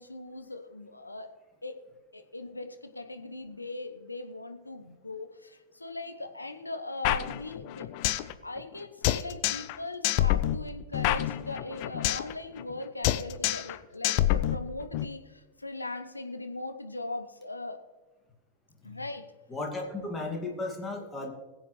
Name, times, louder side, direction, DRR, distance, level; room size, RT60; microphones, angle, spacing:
voice 1, 0.0-1.3 1.6-1.8 2.1-7.9 8.4-17.8 18.8-19.3, left 2 dB, 85° left, 7 dB, 0.9 m, -39 dB
sound 1, 7.0-8.3 8.6-8.7 9.0-9.8 10.0-12.3 12.6-12.8 13.0-13.8 14.0-15.0, left 14 dB, 45° left, 0.6 m, -27 dB
voice 2, 19.5-21.3, left 2 dB, 15° left, 1 dB, 2.2 m, -35 dB
21.0 x 7.7 x 3.2 m, 1.2 s
figure-of-eight pair, 90°, 0 cm